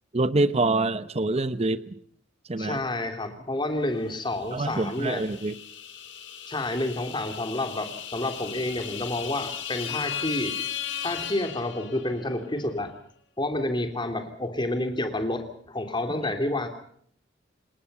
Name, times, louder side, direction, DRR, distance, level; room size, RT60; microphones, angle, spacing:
voice 1, 0.1-2.0 2.5-2.8 4.5-5.6, right 2 dB, 35° right, 13 dB, 0.9 m, -25 dB
voice 2, 2.6-5.2 6.5-10.5 11.0-12.9 13.4-16.7, left 1 dB, 25° left, 6 dB, 3.2 m, -29 dB
sound 1, 4.3-12.3, left 8 dB, 65° left, 5.3 m, -36 dB
28.0 x 19.0 x 5.6 m, 0.63 s
head